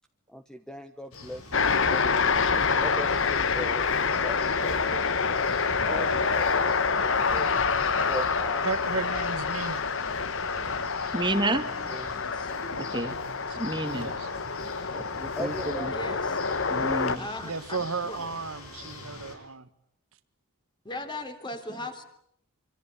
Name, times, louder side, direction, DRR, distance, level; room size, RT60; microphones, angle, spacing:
voice 1, 0.3-3.9 4.2-5.1 5.9-7.6 8.1-8.7 10.5-10.7 11.9-12.1 15.4-16.2, equal, 5° left, 7 dB, 1.1 m, -39 dB
sound 1, 1.1-19.4, left 2 dB, 85° left, 6.9 m, -44 dB
sound 2, 1.5-17.2, left 5 dB, 60° left, 1.3 m, -27 dB
voice 2, 8.6-9.8 13.5-13.6 13.9-14.3 17.4-19.7, right 4 dB, 75° right, 11 dB, 1.6 m, -34 dB
voice 3, 11.1-11.7 12.8-13.2 13.6-14.1 14.9-15.5 16.7-17.3, right 2 dB, 20° right, 10 dB, 1.8 m, -30 dB
voice 4, 12.1-12.5 14.6-14.7 15.9-16.2 17.2-17.8 18.1-18.2 20.8-22.0, left 2 dB, 20° left, 7 dB, 3.2 m, -38 dB
25.5 x 25.0 x 8.9 m, 0.71 s
head